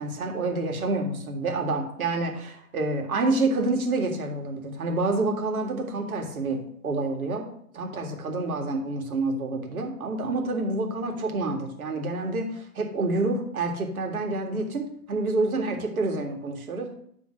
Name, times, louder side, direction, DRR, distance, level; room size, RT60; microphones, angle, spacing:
voice 1, 0.0-7.5 7.7-16.9, right 2 dB, 60° right, 2 dB, 2.2 m, -28 dB
11.0 x 3.8 x 6.4 m, 0.66 s
figure-of-eight pair, 125°, 49 cm